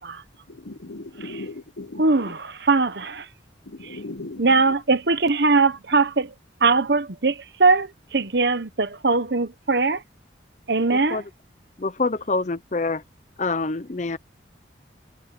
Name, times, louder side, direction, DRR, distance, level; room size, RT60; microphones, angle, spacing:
voice 1, 0.5-2.3 3.7-4.7, left 2 dB, 75° left, 1.0 m, -38 dB
voice 2, 2.0-3.3 3.8-4.0 4.4-6.3 6.6-10.0 10.7-11.2, right 3 dB, 65° right, 1.1 m, -21 dB
voice 3, 10.9-11.2 11.8-13.0 13.4-14.2, left 3 dB, 40° left, 0.7 m, -26 dB
head